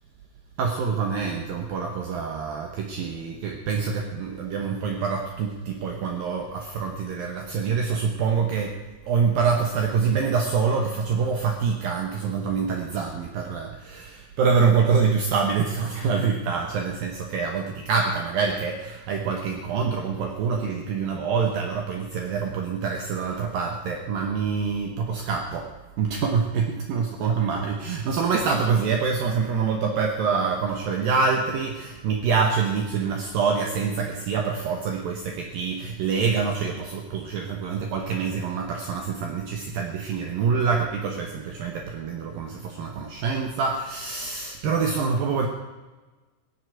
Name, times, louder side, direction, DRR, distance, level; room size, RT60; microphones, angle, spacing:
voice 1, 0.6-8.8 9.0-25.7 26.0-45.5, right 5 dB, 70° right, 2 dB, 2.6 m, -26 dB
16.0 x 8.0 x 9.1 m, 1.2 s
omnidirectional pair, 4.9 m